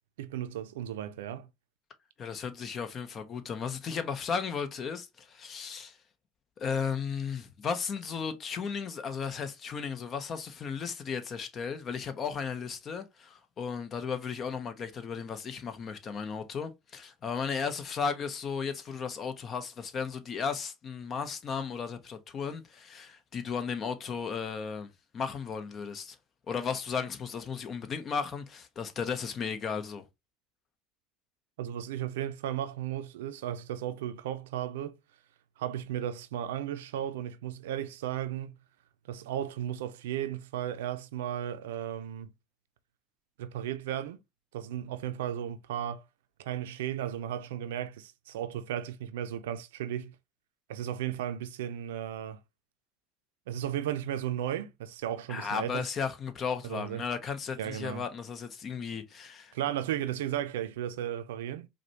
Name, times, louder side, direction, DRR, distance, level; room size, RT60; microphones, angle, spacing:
voice 1, 0.2-1.5 31.6-35.0 35.6-38.5 39.1-42.3 43.4-44.2 44.5-46.0 46.4-50.1 50.7-52.4 53.5-55.9 56.6-57.1 57.6-58.0 59.5-61.7, right 11 dB, 85° right, 0.5 m, -35 dB
voice 2, 2.2-6.0 6.6-26.2 26.5-30.0 55.3-59.5, left 6 dB, 40° left, 0.8 m, -35 dB
4.9 x 2.2 x 2.9 m
supercardioid pair, 95°, 0 cm